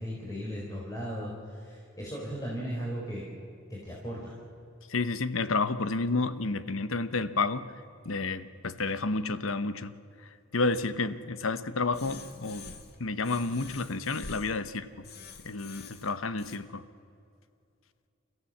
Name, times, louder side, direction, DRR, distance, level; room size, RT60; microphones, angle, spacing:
voice 1, 0.0-3.3 3.7-4.3, equal, 20° left, -4 dB, 3.8 m, -36 dB
voice 2, 4.9-7.7 8.0-9.9 10.2-12.7 13.0-14.9 15.4-16.8, left 3 dB, 85° left, 13 dB, 1.0 m, -30 dB
sound 1, 11.9-13.0 13.2-14.6 15.0-16.6, left 4 dB, 55° left, 1.6 m, -46 dB
29.5 x 14.5 x 7.2 m, 2.5 s
head